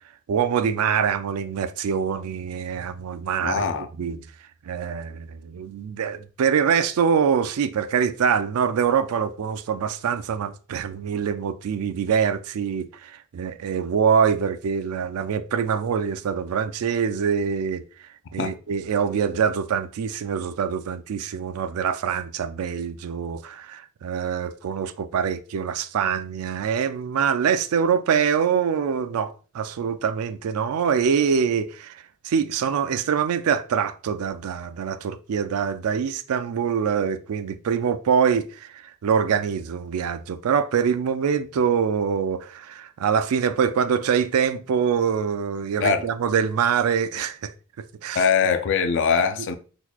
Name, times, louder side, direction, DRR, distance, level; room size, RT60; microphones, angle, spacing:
voice 1, 0.3-3.6 4.0-4.2 4.7-47.5 47.8-48.2, right 7 dB, 75° right, 0.3 m, -24 dB
voice 2, 3.4-3.9 18.4-18.5 45.8-46.1 48.1-49.5, left 6 dB, 55° left, 0.4 m, -22 dB
3.9 x 3.0 x 2.3 m
head